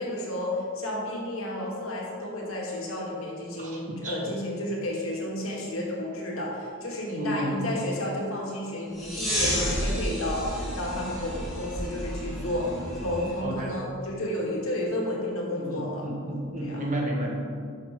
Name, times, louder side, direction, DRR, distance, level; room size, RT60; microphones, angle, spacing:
voice 1, 0.0-16.1 16.6-16.9, left 1 dB, 85° left, -3 dB, 2.2 m, -32 dB
voice 2, 3.6-4.2 7.1-7.7 13.4-13.7 15.6-17.4, right 1 dB, 35° right, -2 dB, 1.6 m, -32 dB
sound 1, 8.9-13.4, equal, ahead, 2.4 m, -31 dB
11.5 x 6.5 x 3.8 m, 2.3 s
head